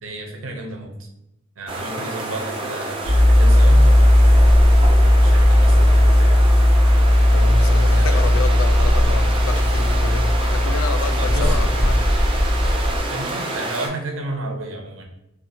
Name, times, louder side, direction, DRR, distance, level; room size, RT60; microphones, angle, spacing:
voice 1, 0.0-1.1 1.6-4.5 5.0-6.4 7.9-8.2 11.2-11.8 13.1-15.0, right 2 dB, 75° right, 2 dB, 0.6 m, -32 dB
sound 1, 1.7-13.9, right 2 dB, 25° right, 0.4 m, -29 dB
sound 2, 3.0-13.0, left 1 dB, 50° left, 0.8 m, -15 dB
voice 2, 7.3-12.1, left 5 dB, 80° left, 9 dB, 0.3 m, -29 dB
2.5 x 2.4 x 2.6 m, 0.87 s
head